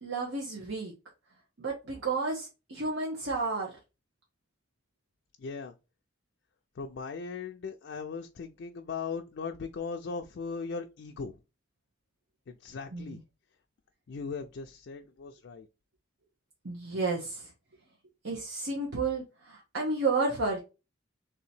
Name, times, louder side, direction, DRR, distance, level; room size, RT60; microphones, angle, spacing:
voice 1, 0.0-0.9 1.6-3.8 12.9-13.2 16.6-17.5 18.2-20.6, right 3 dB, 75° right, 1.0 m, -31 dB
voice 2, 5.4-5.7 6.8-11.3 12.5-13.2 14.1-15.7, left 5 dB, 60° left, 0.3 m, -38 dB
3.4 x 2.8 x 4.2 m
head